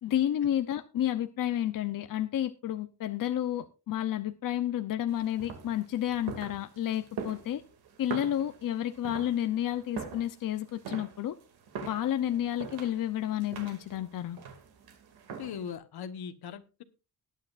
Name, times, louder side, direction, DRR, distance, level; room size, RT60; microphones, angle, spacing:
voice 1, 0.0-7.6 8.0-11.4 11.8-14.4, left 11 dB, 60° left, 0.8 m, -31 dB
sound 1, 5.1-15.8, right 6 dB, 85° right, 2.5 m, -43 dB
voice 2, 15.4-16.8, left 7 dB, 85° left, 1.3 m, -39 dB
19.5 x 9.6 x 2.5 m
wide cardioid pair, 150°, 37 cm